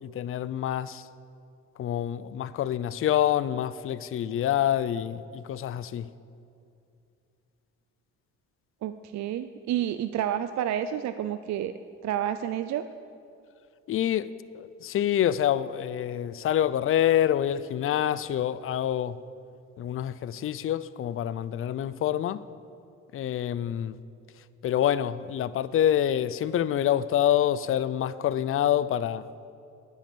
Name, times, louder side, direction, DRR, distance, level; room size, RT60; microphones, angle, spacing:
voice 1, 0.0-1.1 1.8-6.1 13.9-14.3 14.5-19.2 19.8-22.4 23.1-24.0 24.6-29.3, left 11 dB, 45° left, 0.5 m, -26 dB
voice 2, 8.8-11.7 12.0-12.9, right 10 dB, 65° right, 0.5 m, -29 dB
9.6 x 9.2 x 6.8 m
cardioid pair, 90°, 30 cm